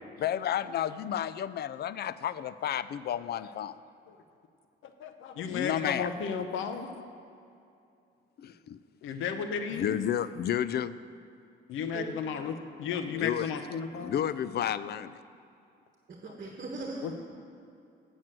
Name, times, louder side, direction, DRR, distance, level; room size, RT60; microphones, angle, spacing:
voice 1, 0.2-3.8 5.4-6.1 8.4-8.8 9.7-10.9 13.1-13.5 14.0-15.2, left 10 dB, 55° left, 15 dB, 0.4 m, -31 dB
voice 2, 4.8-6.9 9.0-10.0 11.7-14.1 17.0-17.1, left 6 dB, 80° left, 7 dB, 0.8 m, -34 dB
voice 3, 16.1-17.1, right 3 dB, 45° right, 0 dB, 1.4 m, -39 dB
9.1 x 6.2 x 7.5 m, 2.6 s
cardioid pair, 90°, 20 cm